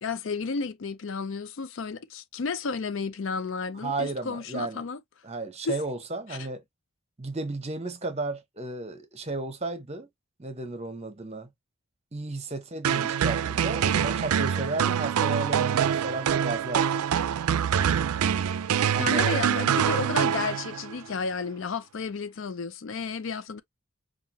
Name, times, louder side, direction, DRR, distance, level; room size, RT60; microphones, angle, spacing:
voice 1, 0.0-5.0 5.7-5.8 6.3-6.5 19.0-23.6, left 5 dB, 60° left, 0.5 m, -32 dB
voice 2, 3.8-4.8 5.2-6.6 7.2-10.1 10.4-11.5 12.1-16.9 18.9-19.4, right 2 dB, 30° right, 1.0 m, -33 dB
sound 1, 12.8-21.0, right 8 dB, 80° right, 0.4 m, -25 dB
5.7 x 2.5 x 2.8 m
head